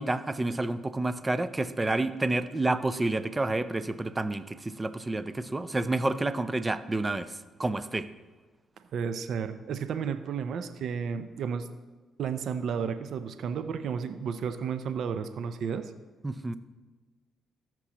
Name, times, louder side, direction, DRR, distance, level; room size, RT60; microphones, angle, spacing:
voice 1, 0.0-8.1 16.2-16.5, right 2 dB, 20° right, 13 dB, 0.5 m, -29 dB
voice 2, 8.9-11.7 12.2-15.9, right 6 dB, 70° right, 10 dB, 0.5 m, -32 dB
14.0 x 6.0 x 3.0 m, 1.3 s
cardioid pair, 80°, 0 cm